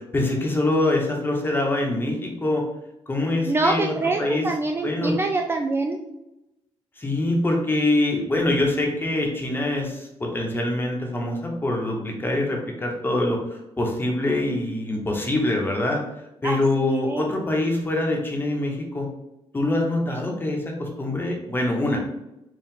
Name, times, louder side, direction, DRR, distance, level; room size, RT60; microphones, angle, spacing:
voice 1, 0.1-2.6 3.1-4.4 4.8-5.2 7.0-16.0 16.4-19.1 19.5-22.0, left 2 dB, 20° left, 0 dB, 1.0 m, -24 dB
voice 2, 3.5-6.0 16.4-17.3, right 2 dB, 20° right, 3 dB, 0.3 m, -25 dB
4.7 x 2.4 x 3.7 m, 0.88 s
cardioid pair, 110°, 11 cm